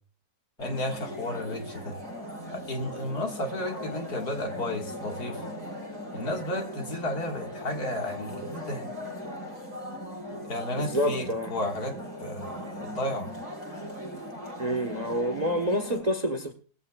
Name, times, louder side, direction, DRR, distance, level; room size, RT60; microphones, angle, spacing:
voice 1, 0.6-1.9 2.5-5.5 6.1-8.9 10.4-13.3, left 1 dB, 60° left, 2.5 m, -33 dB
sound 1, 0.6-16.0, equal, 60° right, 7.2 m, -39 dB
voice 2, 10.8-11.5 14.6-16.5, equal, 25° right, 1.1 m, -28 dB
19.0 x 15.0 x 2.4 m
omnidirectional pair, 1.8 m